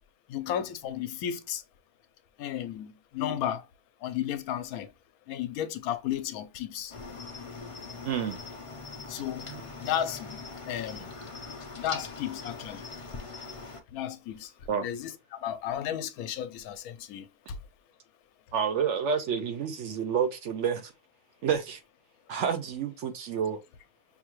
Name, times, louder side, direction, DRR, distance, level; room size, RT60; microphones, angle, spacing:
voice 1, 0.3-1.6 2.4-3.6 4.0-4.9 5.3-6.9 9.1-9.5 9.8-10.4 10.7-11.1 11.8-12.8 13.9-14.5 14.8-15.1 15.4-17.2, left 10 dB, 85° left, 1.1 m, -33 dB
Cricket, 6.9-13.8, left 4 dB, 45° left, 0.4 m, -42 dB
voice 2, 8.0-8.4 9.5-9.6 14.7-14.9 18.5-20.9 21.4-21.8 22.3-23.6, right 7 dB, 65° right, 0.8 m, -29 dB
5.6 x 2.3 x 3.0 m
omnidirectional pair, 1.5 m